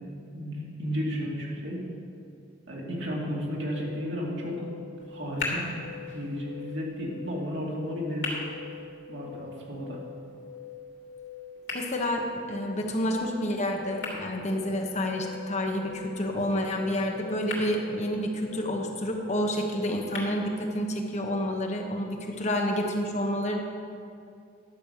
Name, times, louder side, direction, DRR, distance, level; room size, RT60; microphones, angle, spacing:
voice 1, 0.3-1.8 2.7-4.7 5.1-5.7 6.1-8.4 9.1-10.0, equal, 65° right, -4 dB, 2.6 m, -33 dB
sound 1, 3.6-20.2, left 7 dB, 85° left, 2.7 m, -45 dB
sound 2, 5.0-21.0, left 2 dB, 70° left, 3.1 m, -42 dB
voice 2, 11.7-23.6, equal, 40° left, 2 dB, 1.2 m, -29 dB
11.5 x 7.1 x 6.6 m, 2.4 s
head